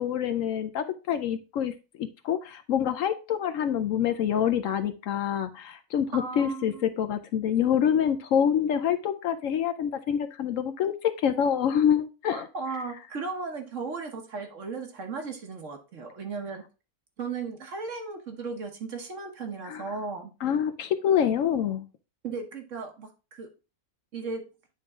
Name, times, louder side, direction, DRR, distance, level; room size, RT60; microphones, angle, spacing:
voice 1, 0.0-12.5 19.6-19.8 20.4-21.8, left 9 dB, 70° left, 9 dB, 0.9 m, -26 dB
voice 2, 6.1-6.9 12.3-16.6 17.2-20.3 22.2-23.5 24.1-24.5, right 4 dB, 55° right, 4 dB, 1.4 m, -36 dB
8.8 x 3.8 x 3.6 m, 0.31 s
omnidirectional pair, 1.6 m